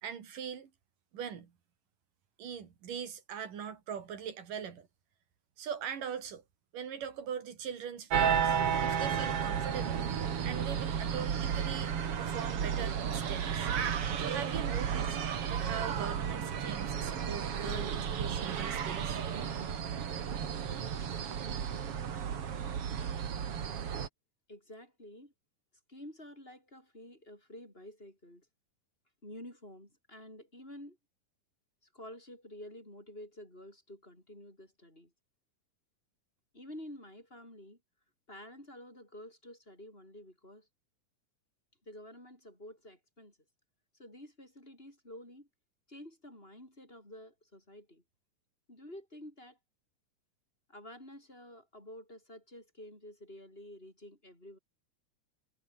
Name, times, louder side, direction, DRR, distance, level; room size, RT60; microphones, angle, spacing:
voice 1, 0.0-0.7 1.1-1.5 2.4-4.9 5.6-6.4 6.7-10.0 10.4-13.7 14.2-15.2 15.5-19.2, right 8 dB, 90° right, 4.5 m, -41 dB
sound 1, 8.1-24.1, right 8 dB, 50° right, 2.7 m, -33 dB
voice 2, 24.5-25.3 25.9-28.5 29.2-31.0 31.9-35.1 36.5-37.8 38.3-40.7 41.9-43.4 43.9-45.5 45.9-48.0 48.7-49.6 50.7-54.6, left 1 dB, 15° left, 7.8 m, -50 dB
omnidirectional pair, 3.7 m